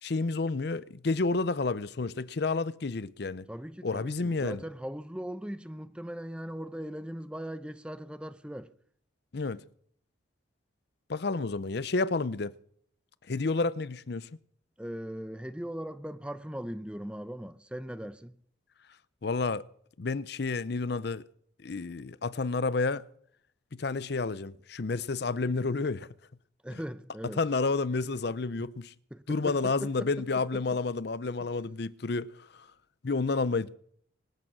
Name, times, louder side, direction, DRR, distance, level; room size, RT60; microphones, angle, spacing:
voice 1, 0.0-3.5 3.8-4.6 9.3-9.6 11.1-12.5 13.3-14.3 19.2-19.7 20.0-21.2 21.6-23.1 23.7-26.1 27.4-28.9 29.3-32.7 33.0-33.8, left 3 dB, 55° left, 0.6 m, -30 dB
voice 2, 3.5-8.7 14.8-18.4 26.6-27.4 29.1-30.1, equal, 5° right, 0.6 m, -39 dB
25.0 x 8.8 x 6.1 m
head